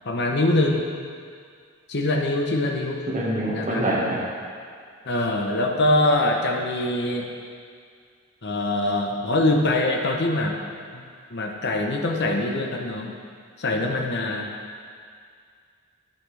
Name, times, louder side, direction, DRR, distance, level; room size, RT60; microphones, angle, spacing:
voice 1, 0.0-0.8 1.9-3.0 3.5-3.9 5.1-7.3 8.4-10.6 10.9-11.0 11.3-13.1 13.6-14.5, left 2 dB, 55° left, 1 dB, 0.9 m, -23 dB
voice 2, 3.1-4.2, right 1 dB, 35° right, -6 dB, 1.5 m, -25 dB
12.0 x 5.8 x 3.3 m, 2.1 s
head